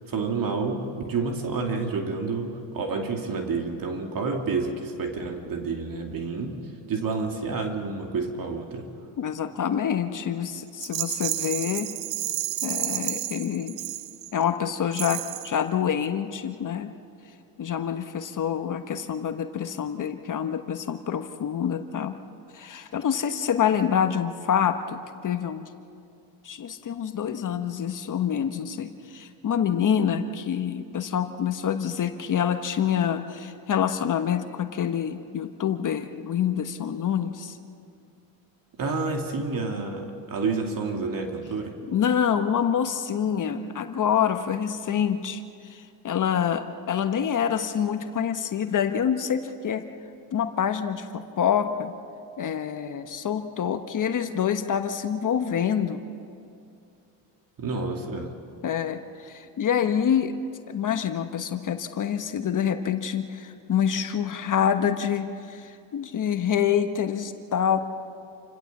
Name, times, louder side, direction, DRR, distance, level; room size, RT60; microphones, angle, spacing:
voice 1, 0.1-6.6 6.9-8.9 38.8-41.8 57.6-58.3, right 4 dB, 45° right, 3 dB, 2.6 m, -29 dB
voice 2, 9.2-11.9 12.6-13.8 14.3-16.9 17.6-22.2 22.5-25.7 26.4-37.6 41.9-49.9 50.3-51.9 52.4-56.0 58.6-60.3 60.7-67.8, left 8 dB, 40° left, 7 dB, 1.3 m, -26 dB
Rattle, 10.8-14.4 14.9-15.6, right 15 dB, 65° right, 1.0 m, -31 dB
28.5 x 16.5 x 7.3 m, 2.4 s
supercardioid pair, 85°, 47 cm